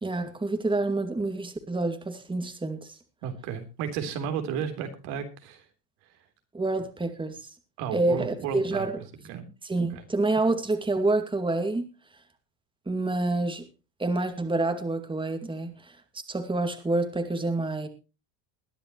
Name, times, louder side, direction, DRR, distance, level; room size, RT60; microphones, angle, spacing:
voice 1, 0.0-2.9 6.5-7.4 7.9-8.9 9.6-11.9 12.9-13.6 14.0-16.0 16.3-17.9, right 2 dB, 10° right, 2.3 m, -27 dB
voice 2, 3.2-5.6 7.8-8.9 9.3-9.4 9.9-10.0, right 8 dB, 70° right, 3.7 m, -33 dB
21.5 x 10.5 x 3.1 m
supercardioid pair, 100°, 47 cm